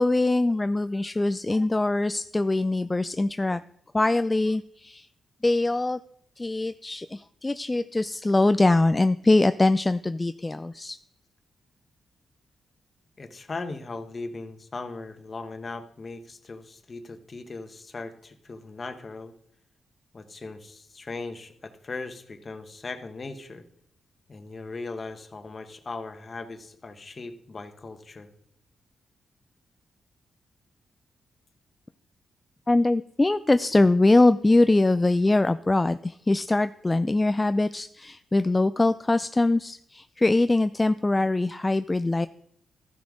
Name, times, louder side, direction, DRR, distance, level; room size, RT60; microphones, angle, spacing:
voice 1, 0.0-3.6 3.9-5.1 5.4-6.0 6.4-11.0 32.7-42.3, left 2 dB, 25° left, 11 dB, 0.3 m, -22 dB
voice 2, 13.2-19.3 20.1-23.6 24.3-28.3, left 3 dB, 45° left, 8 dB, 1.2 m, -38 dB
13.5 x 5.9 x 3.7 m, 0.69 s
supercardioid pair, 50°, 0 cm